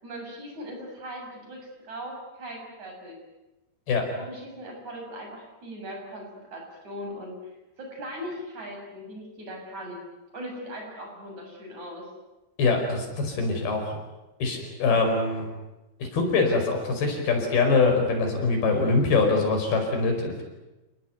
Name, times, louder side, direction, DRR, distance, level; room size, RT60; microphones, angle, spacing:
voice 1, 0.0-3.2 4.0-7.5 7.8-10.0 10.3-12.1, equal, 45° right, 1 dB, 8.4 m, -39 dB
voice 2, 12.6-14.0 14.4-15.5 16.0-20.4, left 3 dB, 65° left, 3 dB, 7.0 m, -23 dB
30.0 x 19.5 x 9.5 m, 1.0 s
omnidirectional pair, 4.7 m